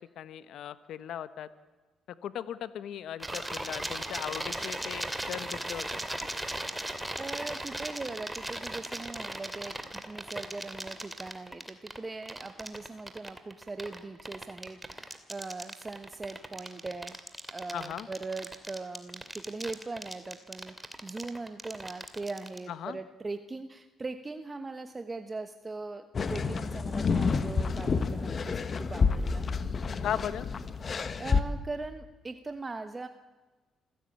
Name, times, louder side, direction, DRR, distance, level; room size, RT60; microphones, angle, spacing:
voice 1, 0.0-1.5 2.2-6.3 17.7-18.1 22.7-23.0 30.0-30.5, left 10 dB, 75° left, 14 dB, 1.0 m, -38 dB
sound 1, 3.2-22.6, right 1 dB, 10° right, 2.6 m, -37 dB
voice 2, 7.2-17.2 17.5-29.5 30.9-33.1, right 3 dB, 25° right, 8 dB, 1.2 m, -40 dB
sound 2, 26.1-31.4, left 5 dB, 45° left, 1.4 m, -29 dB
26.0 x 16.0 x 8.7 m, 1.3 s
cardioid pair, 90°, 0 cm